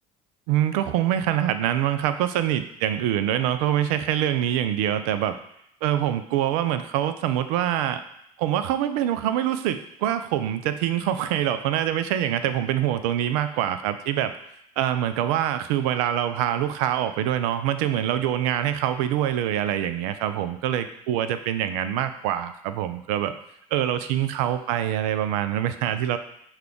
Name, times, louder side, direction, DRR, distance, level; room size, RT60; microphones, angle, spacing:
voice 1, 0.5-5.4 5.8-8.0 8.4-14.3 14.8-23.3 23.7-26.2, right 11 dB, 65° right, 11 dB, 0.4 m, -25 dB
5.7 x 2.3 x 3.5 m, 0.73 s
hypercardioid pair, 65°, 20 cm